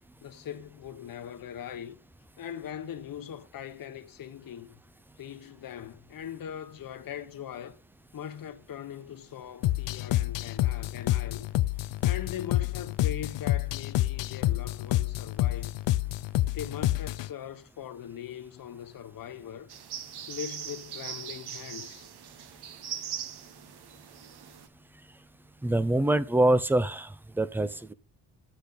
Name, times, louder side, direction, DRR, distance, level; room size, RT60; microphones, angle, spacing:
voice 1, 0.2-2.0 2.4-4.8 5.2-7.8 8.1-11.5 12.0-15.7 16.5-19.7 20.3-22.1, left 9 dB, 50° left, 1.0 m, -41 dB
sound 1, 9.6-17.3, left 16 dB, 70° left, 0.5 m, -28 dB
sound 2, 19.7-24.7, right 9 dB, 60° right, 1.1 m, -40 dB
voice 2, 25.6-27.9, right 1 dB, 5° right, 0.4 m, -25 dB
10.5 x 8.2 x 4.0 m
wide cardioid pair, 170°, 44 cm